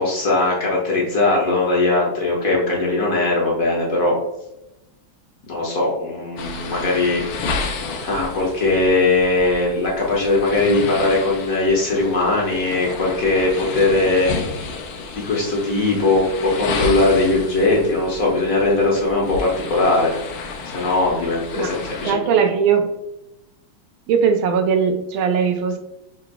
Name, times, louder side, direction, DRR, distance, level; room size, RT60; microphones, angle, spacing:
voice 1, 0.0-4.1 5.5-7.6 8.0-14.3 15.2-20.1 20.6-22.2, left 2 dB, 50° left, -3 dB, 1.3 m, -20 dB
sound 1, 6.4-22.1, left 4 dB, 85° left, 1.5 m, -31 dB
voice 2, 22.0-22.9 24.1-25.8, right 6 dB, 80° right, 6 dB, 1.4 m, -19 dB
5.8 x 3.8 x 2.2 m, 0.89 s
omnidirectional pair, 2.3 m